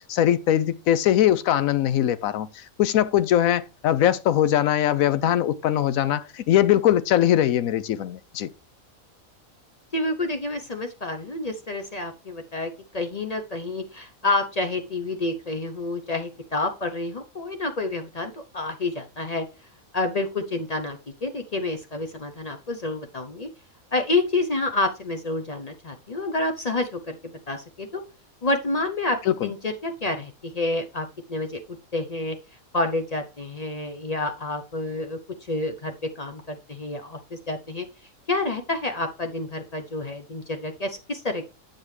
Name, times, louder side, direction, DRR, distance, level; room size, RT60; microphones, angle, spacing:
voice 1, 0.0-8.5 29.3-29.5, left 11 dB, 80° left, 1.0 m, -21 dB
voice 2, 9.9-19.5 19.9-23.5 23.9-28.0 28.4-31.6 31.9-32.4 32.7-35.2 35.5-37.9 38.3-41.5, left 2 dB, 40° left, 0.6 m, -28 dB
7.6 x 6.8 x 3.2 m
omnidirectional pair, 1.4 m